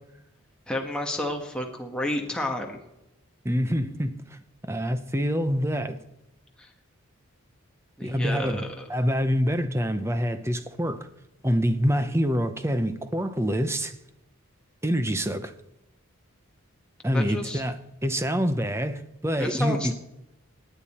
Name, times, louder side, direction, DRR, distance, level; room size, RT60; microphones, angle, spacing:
voice 1, 0.7-2.8 6.6-6.7 8.0-8.8 17.1-17.6 19.4-19.9, left 1 dB, 5° left, 1.3 m, -31 dB
voice 2, 3.4-4.4 4.6-6.0 8.0-8.6 8.9-11.1 11.4-13.9 14.8-15.5 17.0-19.9, equal, 10° right, 0.7 m, -26 dB
18.5 x 9.1 x 4.3 m
head